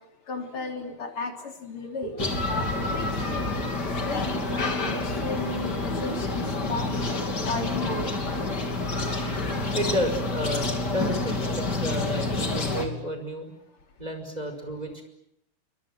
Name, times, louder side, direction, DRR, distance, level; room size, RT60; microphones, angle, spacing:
voice 1, 0.3-3.4 4.0-6.9 7.4-8.1, left 3 dB, 90° left, 4 dB, 4.3 m, -35 dB
sound 1, 2.2-12.9, left 2 dB, 50° left, 3.8 m, -28 dB
voice 2, 9.7-13.5 14.0-15.0, equal, 20° right, 6 dB, 5.5 m, -31 dB
28.5 x 24.0 x 7.7 m, 0.78 s
omnidirectional pair, 2.3 m